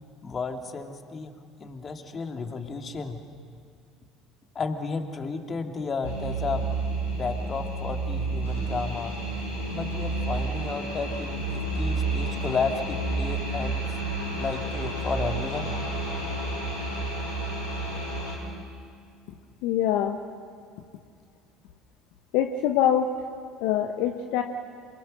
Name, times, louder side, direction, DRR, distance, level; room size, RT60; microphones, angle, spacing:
voice 1, 0.2-1.3 1.6-3.2 4.5-6.7 7.2-9.1 9.7-13.8 14.4-15.7, left 4 dB, 35° left, 5 dB, 2.4 m, -32 dB
sound 1, 6.0-18.4, right 2 dB, 90° left, 6.7 m, -30 dB
voice 2, 19.6-20.2 22.3-23.1 23.6-24.4, left 10 dB, 65° left, 6 dB, 1.0 m, -24 dB
28.0 x 21.5 x 6.5 m, 2.2 s
figure-of-eight pair, 65°, 0 cm